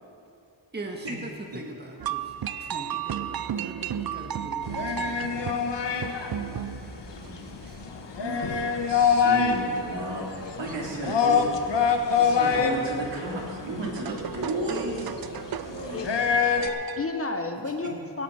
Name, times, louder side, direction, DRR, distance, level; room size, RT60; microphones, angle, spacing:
voice 1, 0.7-2.3 2.6-6.1 7.2-7.8, right 1 dB, 25° right, 2 dB, 1.5 m, -41 dB
sound 1, 2.0-17.1, right 10 dB, 55° right, 0.5 m, -36 dB
sound 2, 4.6-16.7, left 6 dB, 70° left, 1.2 m, -26 dB
voice 2, 8.2-10.3 10.6-11.8 12.1-15.1 15.7-16.0, right 2 dB, 75° right, -4 dB, 3.7 m, -33 dB
voice 3, 15.9-16.2 16.6-18.2, left 3 dB, 30° left, 5 dB, 1.1 m, -32 dB
18.0 x 17.0 x 4.3 m, 2.6 s
wide cardioid pair, 135°, 43 cm